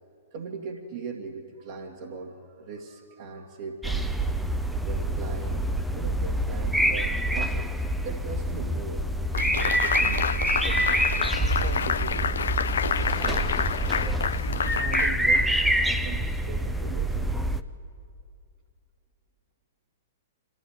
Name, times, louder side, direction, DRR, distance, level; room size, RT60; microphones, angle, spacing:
voice 1, 0.3-4.1 4.8-9.0 9.6-11.0 11.4-12.4 12.8-13.6 14.0-14.2 14.6-15.5 15.8-17.4, right 4 dB, 55° right, -2 dB, 2.2 m, -40 dB
sound 1, 3.8-17.6, right 1 dB, ahead, 0.8 m, -26 dB
sound 2, 9.3-15.8, left 7 dB, 70° left, 0.6 m, -29 dB
25.0 x 15.5 x 9.9 m, 2.4 s
figure-of-eight pair, 110°, 0 cm